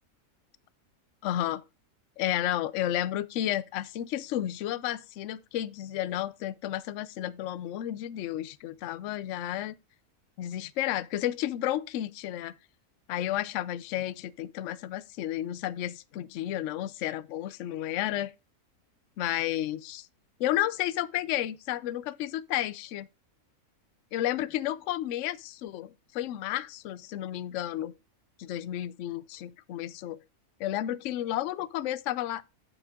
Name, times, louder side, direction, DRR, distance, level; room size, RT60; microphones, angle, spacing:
voice 1, 1.2-1.6 2.2-9.7 10.4-12.5 13.1-18.3 19.2-20.1 20.4-23.1 24.1-27.9 28.4-30.2 30.6-32.4, left 13 dB, 65° left, 0.8 m, -32 dB
9.8 x 7.1 x 3.6 m
omnidirectional pair, 1.6 m